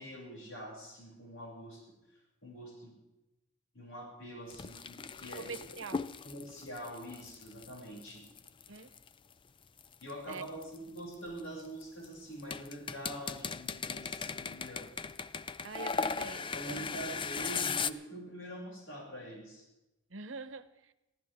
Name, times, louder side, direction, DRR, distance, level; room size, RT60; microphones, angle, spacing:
voice 1, 0.0-1.9 2.4-3.0 3.7-5.8 6.2-8.3 10.0-14.9 16.5-19.7, right 1 dB, 90° left, -2 dB, 7.1 m, -45 dB
sound 1, 4.5-9.1 9.8-12.0 12.4-17.9, left 5 dB, 25° left, 0.4 m, -38 dB
voice 2, 5.3-6.0 8.7-8.9 10.3-10.5 15.6-16.9 20.1-20.9, right 4 dB, 80° right, 12 dB, 1.0 m, -44 dB
23.0 x 15.5 x 3.7 m, 0.95 s
head